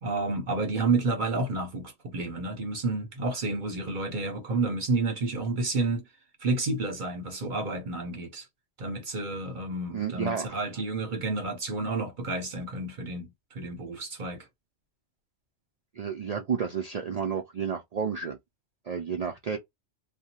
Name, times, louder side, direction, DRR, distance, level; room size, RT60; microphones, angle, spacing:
voice 1, 0.0-6.0 6.4-8.5 8.8-14.5, right 3 dB, 50° right, 0.8 m, -30 dB
voice 2, 9.9-10.6 15.9-18.4 18.9-19.6, right 6 dB, 90° right, 0.3 m, -31 dB
2.6 x 2.1 x 2.8 m
omnidirectional pair, 1.2 m